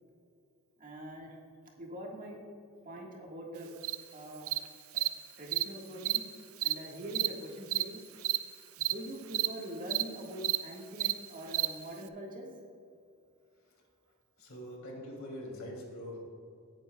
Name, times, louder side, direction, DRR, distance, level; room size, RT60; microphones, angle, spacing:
voice 1, 0.8-1.4 1.8-2.4 2.8-3.7 4.1-4.5 4.9-5.0 5.4-6.2 6.6-8.0 8.8-12.5, equal, 40° right, -2 dB, 1.6 m, -43 dB
Cricket, 3.8-4.0 4.5-4.6 5.0-5.1 5.5-5.6 6.0-6.2 6.6-6.7 7.1-7.3 7.7-7.8 8.2-8.4 8.8-8.9 9.3-9.5 9.9-10.0 10.4-10.6 11.0-11.1 11.5-11.7, right 17 dB, 75° right, 0.5 m, -29 dB
voice 2, 14.4-16.2, left 1 dB, 70° left, -1 dB, 2.8 m, -43 dB
17.5 x 8.9 x 2.3 m, 2.4 s
head